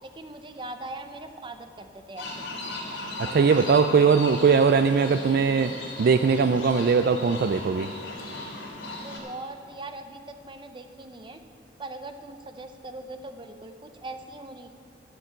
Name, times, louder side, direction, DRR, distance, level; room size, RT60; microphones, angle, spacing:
voice 1, 0.0-2.3 3.2-3.5 9.0-11.4 11.8-14.7, right 2 dB, 25° right, 7 dB, 0.7 m, -40 dB
sound 1, 2.2-9.2, left 2 dB, 75° left, 3.2 m, -37 dB
voice 2, 3.3-5.7 6.0-7.9, right 5 dB, 50° right, 9 dB, 0.3 m, -20 dB
13.5 x 6.8 x 7.9 m, 2.3 s
head